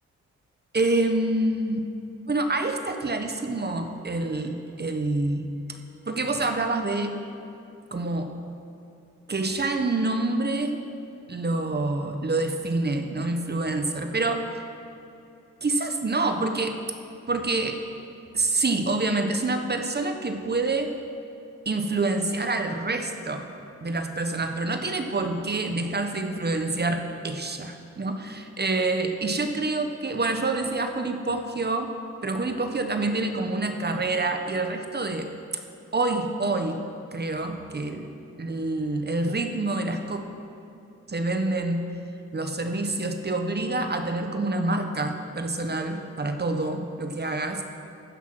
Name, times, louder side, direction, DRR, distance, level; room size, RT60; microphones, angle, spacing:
voice 1, 0.7-1.9 2.3-5.5 6.1-7.2 7.9-8.3 9.3-10.8 11.3-14.4 15.6-16.8 17.3-17.8 18.3-20.9 21.6-23.5 23.8-31.9 32.2-35.3 35.9-36.8 37.1-38.0 38.4-40.2 41.1-41.8 42.3-47.6, right 2 dB, 35° right, 6 dB, 1.1 m, -27 dB
15.5 x 5.8 x 6.1 m, 2.7 s
cardioid pair, 60°, 31 cm